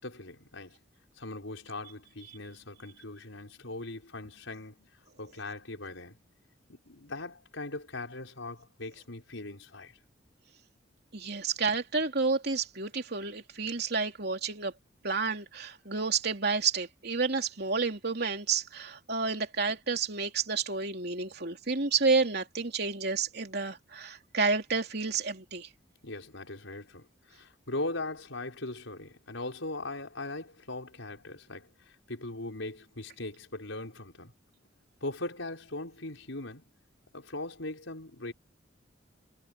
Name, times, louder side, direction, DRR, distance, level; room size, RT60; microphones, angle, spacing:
voice 1, 0.0-0.8 1.1-4.9 5.2-6.2 6.7-10.0 26.0-34.3 35.0-36.7 37.1-38.3, left 2 dB, 85° left, 5.1 m, -40 dB
voice 2, 11.1-14.7 15.0-25.7, right 4 dB, 55° right, 3.2 m, -30 dB
head